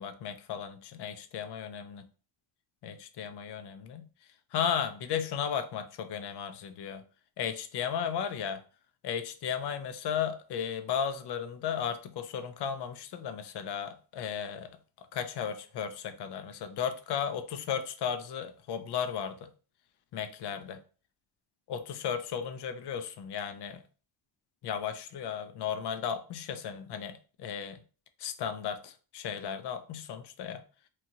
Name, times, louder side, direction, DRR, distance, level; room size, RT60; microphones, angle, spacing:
voice 1, 0.0-2.1 2.8-4.1 4.5-7.0 7.4-8.6 9.0-14.7 15.0-19.5 20.1-20.8 21.7-23.8 24.6-27.8 28.2-30.6, left 8 dB, 55° left, 10 dB, 0.5 m, -35 dB
2.9 x 2.4 x 2.7 m, 0.37 s
cardioid pair, 90°, 49 cm